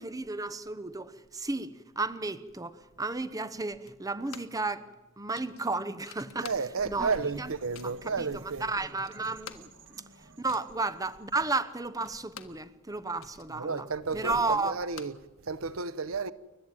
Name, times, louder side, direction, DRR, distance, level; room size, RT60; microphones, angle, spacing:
voice 1, 0.0-4.9 5.2-6.5 6.8-7.5 7.8-9.7 10.4-13.9 14.1-14.8, right 3 dB, 15° right, 0.9 m, -33 dB
sound 1, 3.9-4.7 5.0-5.1 5.3-7.0 7.3-8.0 8.6-8.7 8.9-12.7 13.0-15.8, left 7 dB, 75° left, 1.5 m, -50 dB
voice 2, 6.4-8.8 13.5-16.3, right 4 dB, 80° right, 0.9 m, -32 dB
sound 2, 6.7-11.8, right 1 dB, 65° right, 2.5 m, -55 dB
29.5 x 12.0 x 9.1 m
head